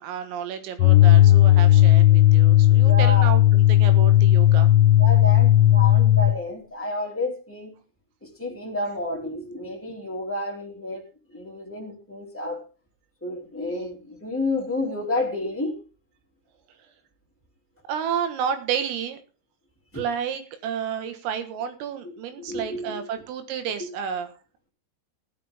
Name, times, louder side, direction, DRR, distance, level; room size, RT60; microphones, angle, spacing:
voice 1, 0.0-4.7 17.9-19.2 19.9-24.3, right 8 dB, 85° right, 9 dB, 4.3 m, -31 dB
sound 1, 0.8-6.4, left 14 dB, 80° left, 3.0 m, -15 dB
voice 2, 2.8-3.3 5.0-7.7 8.2-11.0 11.3-12.6 13.2-15.8 19.9-20.0 22.0-23.0 23.8-23.9, left 2 dB, 10° left, -2 dB, 0.6 m, -30 dB
16.5 x 11.5 x 3.6 m, 0.33 s
omnidirectional pair, 5.8 m